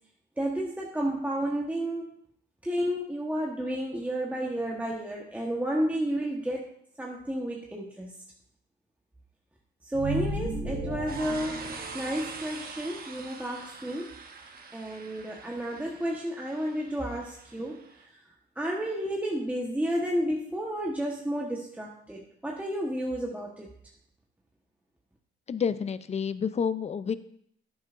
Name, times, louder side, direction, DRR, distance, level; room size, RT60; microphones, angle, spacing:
voice 1, 0.4-2.1 2.6-6.7 7.0-8.1 9.8-14.1 14.4-23.7, right 1 dB, 5° right, -2 dB, 1.2 m, -32 dB
sound 1, 9.9-12.5, right 1 dB, 70° right, 2.6 m, -34 dB
sound 2, 11.1-18.1, right 4 dB, 50° right, 1.3 m, -44 dB
voice 2, 25.5-27.2, left 6 dB, 35° left, 14 dB, 0.5 m, -29 dB
10.5 x 9.3 x 2.5 m, 0.67 s
cardioid pair, 90°, 20 cm